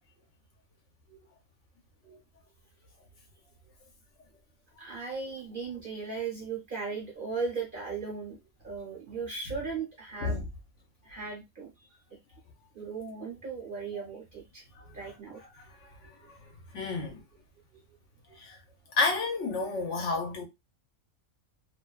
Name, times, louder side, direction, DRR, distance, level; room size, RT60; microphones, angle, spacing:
voice 1, 4.8-8.4 8.6-10.5 11.0-11.7 12.3-12.4 12.7-15.4, right 5 dB, 50° right, 0.7 m, -37 dB
voice 2, 16.7-17.2 18.4-18.6 19.0-20.4, left 4 dB, 65° left, 1.0 m, -30 dB
2.6 x 2.1 x 2.3 m
omnidirectional pair, 1.5 m